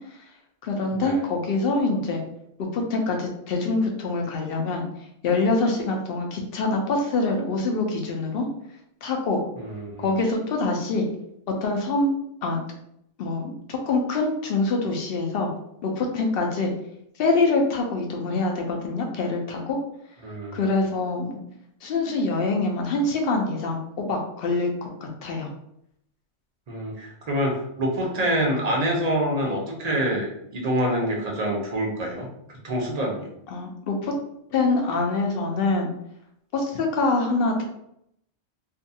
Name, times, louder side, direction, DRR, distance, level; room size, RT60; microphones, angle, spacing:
voice 1, 0.6-2.2 2.6-4.8 5.2-8.5 9.0-9.4 10.0-11.0 11.6-12.1 12.4-12.6 13.2-15.5 15.8-16.7 17.2-19.8 20.5-21.4 21.8-25.5 33.5-34.1 34.5-35.9 36.5-37.6, left 3 dB, 60° left, 2 dB, 0.7 m, -25 dB
voice 2, 9.6-10.1 20.2-20.7 26.7-32.3 32.6-33.3, right 1 dB, 45° right, -1 dB, 0.5 m, -26 dB
2.5 x 2.3 x 2.7 m, 0.75 s
omnidirectional pair, 1.2 m